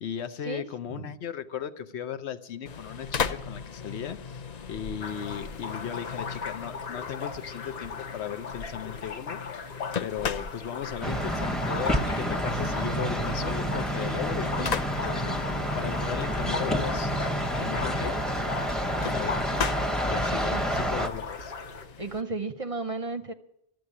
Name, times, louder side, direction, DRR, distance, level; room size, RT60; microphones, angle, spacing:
voice 1, 0.0-4.4 4.7-9.7 10.0-17.1 17.6-18.2 19.0-19.4 20.0-21.5, left 8 dB, 85° left, 10 dB, 1.1 m, -36 dB
sound 1, 2.7-22.2, left 6 dB, 45° left, 0.6 m, -38 dB
sound 2, 5.0-21.9, left 5 dB, 70° left, 1.3 m, -38 dB
sound 3, 11.0-21.1, equal, ahead, 0.7 m, -29 dB
voice 2, 20.3-20.6 22.0-23.3, right 3 dB, 35° right, 10 dB, 0.6 m, -34 dB
13.0 x 7.8 x 9.7 m, 0.80 s
omnidirectional pair, 1.1 m